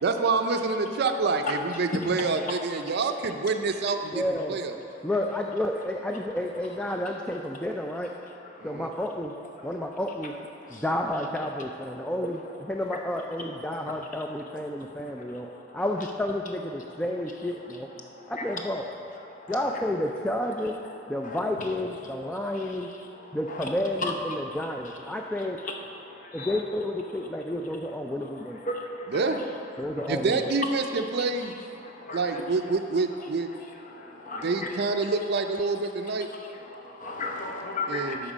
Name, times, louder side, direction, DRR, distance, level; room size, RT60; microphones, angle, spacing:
voice 1, 0.0-4.9 8.6-8.9 29.1-29.4 30.1-31.5 32.1-33.5 34.4-36.3 37.9-38.3, right 3 dB, 55° right, 7 dB, 0.5 m, -27 dB
voice 2, 4.1-4.6 5.0-8.1 8.6-9.3 9.6-10.4 10.7-15.5 15.7-17.9 18.3-18.9 19.5-20.8 21.1-22.9 23.3-25.6 26.3-28.6 29.8-30.4, left 1 dB, 5° left, 1 dB, 0.3 m, -30 dB
voice 3, 26.2-26.5 28.7-29.3 30.0-30.1 31.8-32.4 33.9-34.7 36.7-38.3, left 2 dB, 45° left, 1 dB, 0.9 m, -35 dB
12.5 x 4.3 x 5.0 m, 2.8 s
head